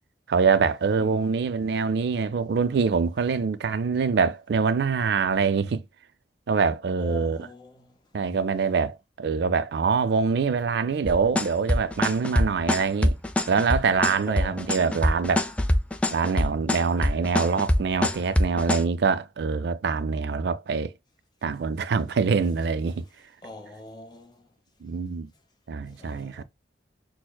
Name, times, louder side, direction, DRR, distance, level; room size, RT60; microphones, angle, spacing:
voice 1, 0.3-5.8 6.5-7.5 8.1-13.1 13.5-15.5 16.1-20.9 21.4-23.0 24.8-25.3 25.7-26.4, right 5 dB, 70° right, 0.4 m, -24 dB
voice 2, 1.0-1.5 7.0-7.9 14.3-14.8 23.4-24.5 25.8-26.4, left 1 dB, 25° left, 0.8 m, -43 dB
sound 1, 11.1-18.8, left 1 dB, 5° left, 0.4 m, -23 dB
6.2 x 2.1 x 2.2 m
head